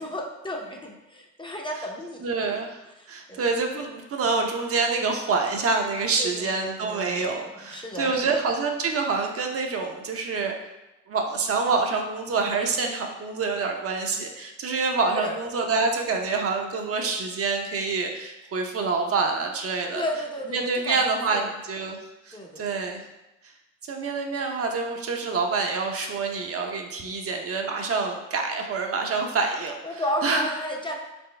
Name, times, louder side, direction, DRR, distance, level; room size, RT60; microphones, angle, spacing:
voice 1, 0.0-2.3 3.0-3.4 6.2-7.4 7.7-8.1 15.1-15.4 19.9-21.5 22.3-22.8 29.8-31.0, equal, 15° left, 0 dB, 0.6 m, -33 dB
voice 2, 2.2-2.8 3.1-10.5 11.1-20.0 20.5-22.0 22.3-23.0 23.9-29.8 30.2-30.5, right 4 dB, 50° right, 2 dB, 0.7 m, -26 dB
4.3 x 3.8 x 3.2 m, 0.96 s
cardioid pair, 90°, 30 cm